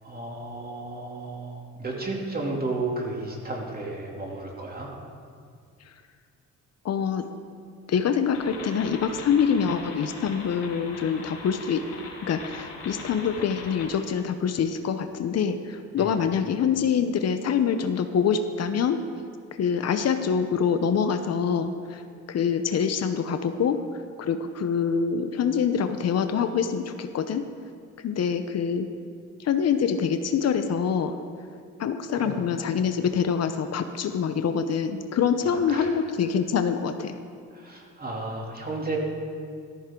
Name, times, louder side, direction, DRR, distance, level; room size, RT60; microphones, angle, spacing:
voice 1, 0.0-4.9 16.0-16.2 32.2-32.6 35.5-35.9 37.5-39.0, right 2 dB, 30° right, -1 dB, 2.8 m, -33 dB
voice 2, 6.8-7.2 7.9-11.8 12.3-19.0 19.6-22.0 22.3-23.8 24.2-27.4 28.0-28.9 29.4-31.2 31.8-37.1, left 7 dB, 55° left, 9 dB, 0.8 m, -25 dB
sound 1, 8.3-13.9, left 3 dB, 80° left, 4.1 m, -41 dB
14.0 x 14.0 x 3.8 m, 2.2 s
cardioid pair, 90°, 30 cm